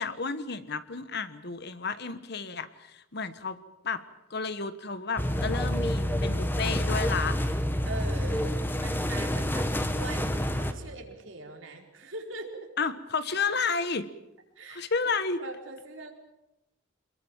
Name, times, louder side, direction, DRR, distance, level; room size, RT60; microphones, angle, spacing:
voice 1, 0.0-3.6 3.8-4.0 4.3-7.4 8.3-8.5 12.8-14.1 14.7-15.4, left 4 dB, 55° left, 12 dB, 1.3 m, -31 dB
sound 1, 5.2-10.7, equal, 10° left, 1.6 m, -28 dB
voice 2, 7.8-12.7 14.5-16.1, right 2 dB, 75° right, 2 dB, 4.7 m, -42 dB
27.0 x 21.5 x 7.4 m, 0.90 s
head